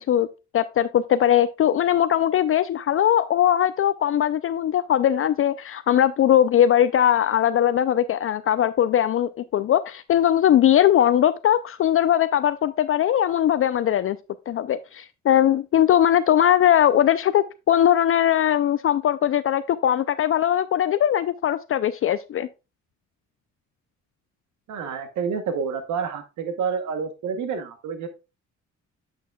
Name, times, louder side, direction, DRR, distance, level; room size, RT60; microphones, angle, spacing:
voice 1, 0.5-14.2 14.5-22.5, left 10 dB, 45° left, 0.4 m, -20 dB
voice 2, 24.7-28.1, right 6 dB, 75° right, 1.0 m, -28 dB
8.3 x 6.3 x 2.3 m
cardioid pair, 90°, 30 cm